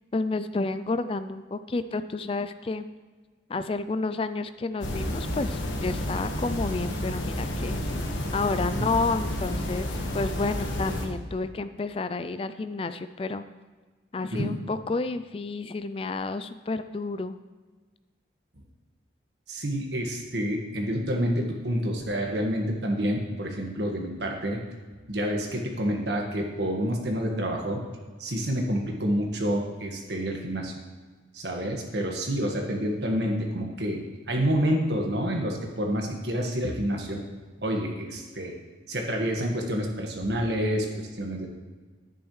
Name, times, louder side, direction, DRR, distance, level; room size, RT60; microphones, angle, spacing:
voice 1, 0.1-2.9 3.5-7.8 8.3-13.4 14.1-17.4, left 3 dB, 30° left, 12 dB, 0.3 m, -30 dB
sound 1, 4.8-11.1, left 1 dB, 90° left, 1.4 m, -30 dB
voice 2, 19.5-24.6 25.1-27.8 28.2-30.7 31.3-37.2 37.6-38.5 38.9-41.5, equal, 65° right, 1 dB, 1.6 m, -28 dB
11.0 x 9.7 x 3.2 m, 1.4 s
head